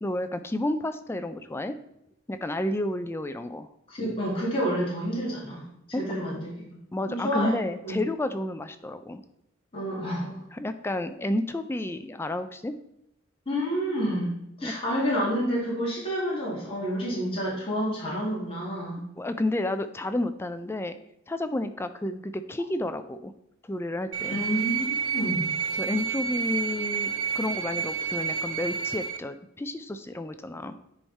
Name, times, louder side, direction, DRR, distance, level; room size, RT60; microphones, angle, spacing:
voice 1, 0.0-1.8 2.3-3.7 5.9-6.0 6.9-9.2 10.5-12.7 14.6-14.7 19.2-21.0 21.3-23.3 23.6-24.4 25.8-27.1 27.3-30.7, left 1 dB, 10° left, 10 dB, 0.3 m, -31 dB
voice 2, 3.9-5.6 6.0-6.6 7.1-7.6 7.8-8.0 9.7-10.3 13.5-19.0 24.3-25.5, equal, 25° left, -6 dB, 2.3 m, -29 dB
sound 1, 24.1-29.2, right 7 dB, 80° right, 0.5 m, -30 dB
10.0 x 3.6 x 4.1 m, 0.82 s
head